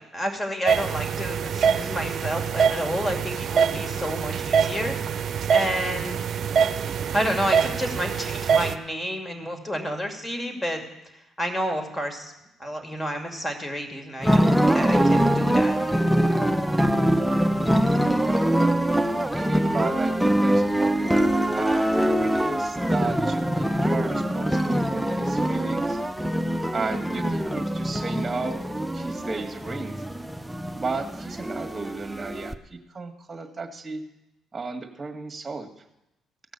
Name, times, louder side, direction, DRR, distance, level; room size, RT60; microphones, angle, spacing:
voice 1, 0.1-4.9 5.5-6.2 7.1-10.8 11.4-12.3 12.6-15.8, equal, 15° left, 4 dB, 2.5 m, -30 dB
sound 1, 0.7-8.7, right 7 dB, 60° right, 0.6 m, -24 dB
sound 2, 14.2-32.5, right 1 dB, 5° right, 0.6 m, -23 dB
voice 2, 19.1-21.2 21.5-26.0 26.7-28.6 28.9-30.1 30.8-34.1 34.5-35.7, right 3 dB, 30° right, 4 dB, 1.7 m, -34 dB
15.5 x 6.1 x 6.7 m, 0.89 s
supercardioid pair, 60°, 0 cm